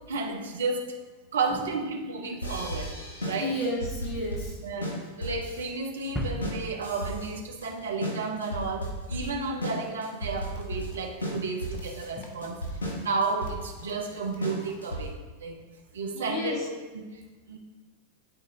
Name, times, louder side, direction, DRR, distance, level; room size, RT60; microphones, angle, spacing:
voice 1, 0.1-0.9 1.3-2.9 3.3-3.5 4.6-12.6 13.0-15.1 15.4-15.6 15.9-17.1 17.5-17.6, right 4 dB, 65° right, 3 dB, 0.9 m, -32 dB
sound 1, 2.4-15.3, equal, 70° left, 1.5 m, -35 dB
voice 2, 3.4-4.6 16.1-16.7, left 1 dB, 35° left, -3 dB, 1.8 m, -32 dB
sound 2, 6.2-8.8, equal, 5° left, 0.6 m, -38 dB
Run, 10.2-14.9, left 4 dB, 55° left, 0.8 m, -50 dB
11.5 x 4.1 x 2.7 m, 1.3 s
figure-of-eight pair, 90°, 0 cm